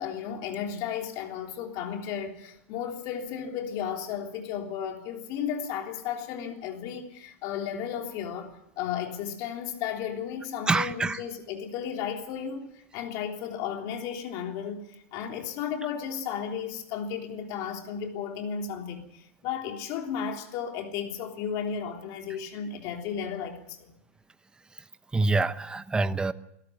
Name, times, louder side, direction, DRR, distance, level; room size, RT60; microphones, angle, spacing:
voice 1, 0.0-23.9, left 8 dB, 50° left, 3.4 m, -34 dB
voice 2, 10.7-11.2 25.1-26.3, right 3 dB, 10° right, 0.9 m, -25 dB
23.0 x 13.5 x 9.4 m
hypercardioid pair, 115°, 8 cm